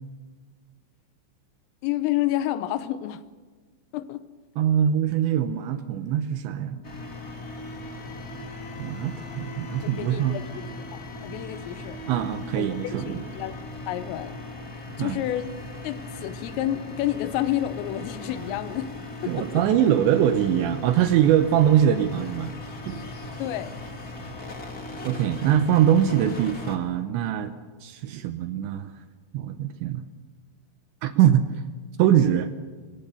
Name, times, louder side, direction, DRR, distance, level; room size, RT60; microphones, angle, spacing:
voice 1, 1.8-3.2 3.9-4.3 9.8-10.7 10.9-12.0 12.6-12.7 13.0-13.6 13.9-14.4 15.0-15.6 15.8-18.9 19.2-19.7 23.4-23.8, left 13 dB, 80° left, 13 dB, 3.5 m, -29 dB
voice 2, 4.6-6.8 8.8-10.4 12.1-13.3 15.0-15.2 19.3-22.6 22.9-23.0 25.0-27.5 27.8-28.9 29.3-30.0 31.0-31.4 32.0-32.5, right 10 dB, 75° right, 9 dB, 2.7 m, -22 dB
sound 1, 6.8-26.8, left 2 dB, 35° left, 1.6 m, -38 dB
24.0 x 23.5 x 6.9 m, 1.4 s
omnidirectional pair, 5.9 m